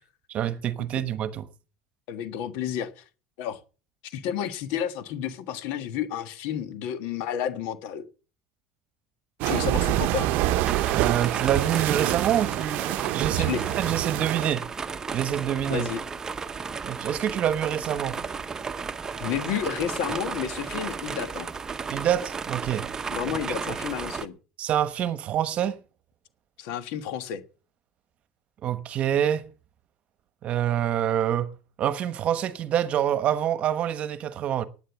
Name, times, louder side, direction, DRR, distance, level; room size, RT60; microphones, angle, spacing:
voice 1, 0.3-1.5 10.9-14.7 15.1-15.9 16.8-18.2 21.9-22.9 23.3-23.6 24.6-25.8 28.6-29.5 30.4-31.5 31.8-34.6, right 10 dB, 40° right, 1.1 m, -26 dB
voice 2, 2.1-3.0 3.4-3.6 4.0-8.0 9.4-10.3 13.4-13.6 15.7-16.0 19.2-21.5 23.1-24.3 26.6-27.4, left 9 dB, 70° left, 1.5 m, -31 dB
sound 1, 9.4-14.5, right 15 dB, 65° right, 0.7 m, -26 dB
sound 2, 10.7-24.3, right 5 dB, 20° right, 0.8 m, -34 dB
11.5 x 9.1 x 7.1 m
cardioid pair, 135°, 3 cm